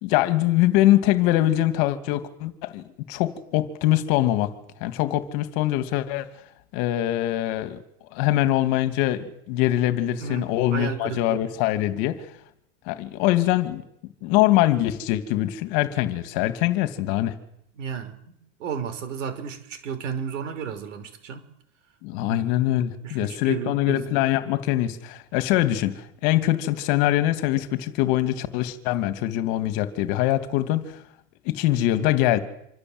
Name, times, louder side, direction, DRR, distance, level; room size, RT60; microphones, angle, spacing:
voice 1, 0.0-4.5 4.8-6.2 6.7-7.8 8.1-12.2 12.9-13.8 14.2-17.3 22.0-30.9 31.4-32.4, left 14 dB, 40° left, 2.6 m, -23 dB
voice 2, 10.2-11.4 17.8-18.3 18.6-21.4 22.3-22.4 23.0-24.0, right 7 dB, 80° right, 5.6 m, -33 dB
26.5 x 26.0 x 8.0 m
supercardioid pair, 170°, 37 cm